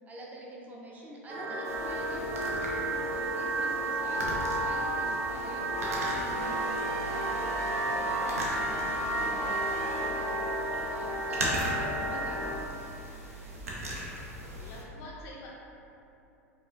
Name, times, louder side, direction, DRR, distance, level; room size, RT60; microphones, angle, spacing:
voice 1, 0.1-2.8 3.1-6.1 7.0-13.0, right 1 dB, 20° right, -3 dB, 0.6 m, -47 dB
sound 1, 1.3-12.5, right 1 dB, 50° right, 1.1 m, -32 dB
sound 2, 1.6-14.8, right 1 dB, 70° right, 0.6 m, -39 dB
sound 3, 5.7-10.2, left 1 dB, 90° left, 0.8 m, -43 dB
voice 2, 6.0-6.6 14.3-15.5, left 2 dB, 45° left, -3 dB, 0.5 m, -47 dB
5.0 x 2.4 x 2.4 m, 2.8 s
figure-of-eight pair, 80°, 8 cm